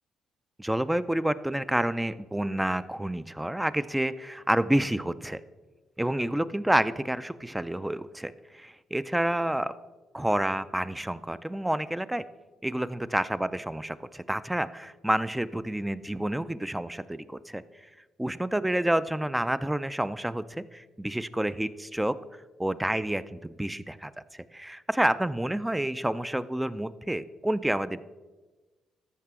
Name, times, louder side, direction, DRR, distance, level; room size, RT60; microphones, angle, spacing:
voice 1, 0.6-5.4 6.0-9.7 10.1-12.2 12.6-17.6 18.2-22.2 22.6-24.1 24.5-28.0, right 1 dB, 5° right, 15 dB, 0.4 m, -29 dB
13.5 x 5.7 x 3.6 m, 1.2 s
cardioid pair, 90°, 0 cm